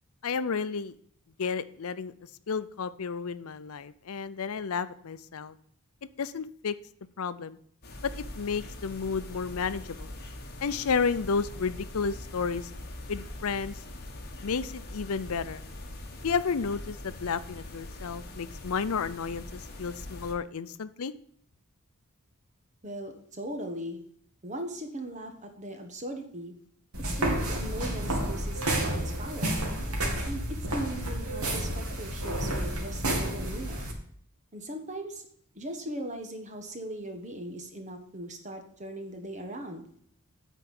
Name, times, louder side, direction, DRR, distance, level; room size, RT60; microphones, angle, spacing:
voice 1, 0.2-0.9 1.4-2.1 2.5-5.6 6.2-6.7 7.2-7.6 8.0-10.1 10.6-12.7 13.1-13.8 14.4-15.6 16.2-21.1, left 5 dB, 75° left, 15 dB, 0.6 m, -32 dB
sound 1, 7.8-20.3, left 1 dB, 45° left, 1.6 m, -42 dB
voice 2, 22.8-24.0 24.4-26.5 27.2-29.6 30.2-33.9 34.5-35.2 35.5-39.8, right 1 dB, 35° right, 5 dB, 1.3 m, -39 dB
sound 2, 26.9-33.9, right 1 dB, 90° right, 2.2 m, -30 dB
9.2 x 4.6 x 7.7 m, 0.63 s
head